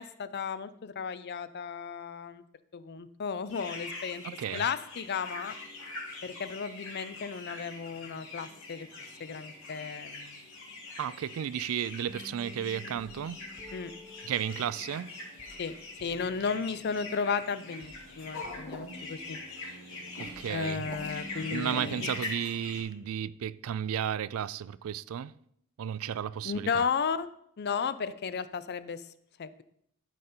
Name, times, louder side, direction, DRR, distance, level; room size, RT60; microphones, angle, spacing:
voice 1, 0.0-2.4 2.7-4.2 4.5-5.5 6.2-8.9 9.2-10.4 13.7-13.9 15.6-15.7 16.0-19.4 20.5-22.1 26.4-27.3 27.6-29.1 29.4-29.6, left 6 dB, 50° left, 0.5 m, -34 dB
sound 1, 3.5-22.8, left 2 dB, 65° left, 3.5 m, -43 dB
voice 2, 4.2-4.6 11.0-13.4 14.2-15.1 20.2-20.9 21.5-25.3 25.8-26.8, right 9 dB, 65° right, 0.3 m, -33 dB
sound 2, 12.1-22.2, left 2 dB, ahead, 1.7 m, -51 dB
12.5 x 5.0 x 4.4 m
head